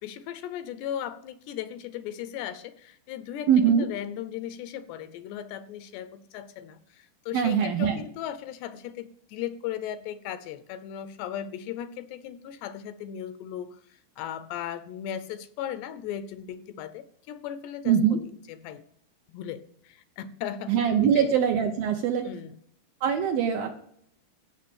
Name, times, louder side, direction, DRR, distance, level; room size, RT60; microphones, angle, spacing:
voice 1, 0.0-18.2 18.5-18.8 19.3-20.7 21.0-21.3 22.2-22.6, left 10 dB, 80° left, 13 dB, 2.7 m, -37 dB
voice 2, 3.5-3.9 7.3-8.0 17.9-18.2 20.7-22.3 23.0-23.8, right 8 dB, 75° right, 5 dB, 2.3 m, -22 dB
16.0 x 6.5 x 8.7 m, 0.69 s
omnidirectional pair, 5.3 m